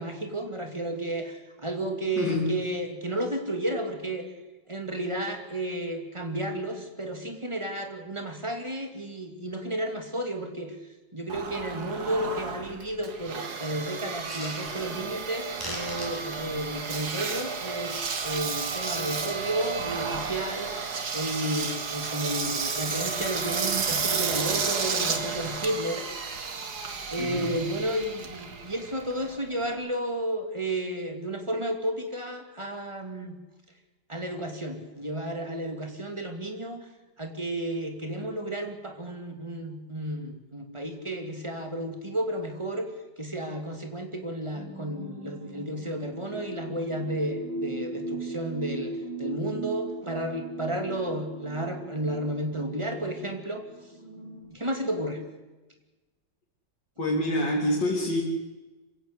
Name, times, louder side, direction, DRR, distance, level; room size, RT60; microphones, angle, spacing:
voice 1, 0.0-4.3 4.7-10.8 11.1-20.7 21.1-26.1 27.1-33.4 34.1-36.8 37.2-42.9 43.2-53.6 54.5-55.2, right 1 dB, 15° right, 5 dB, 2.7 m, -32 dB
voice 2, 2.2-2.5 27.2-27.5 57.0-58.2, left 1 dB, 70° left, -3 dB, 3.8 m, -26 dB
Engine, 11.3-29.7, right 5 dB, 60° right, 2.4 m, -32 dB
sound 1, 14.2-15.3 15.6-18.2 18.6-19.8 20.2-22.7 23.0-23.1 23.3-23.6 23.9-25.9 26.3-27.0 27.5-28.0 28.3-28.9 29.7-30.0, equal, 10° left, 7.3 m, -46 dB
sound 2, 44.5-54.4, right 2 dB, 85° right, 7.4 m, -39 dB
26.5 x 16.0 x 8.3 m, 1.1 s
omnidirectional pair, 2.0 m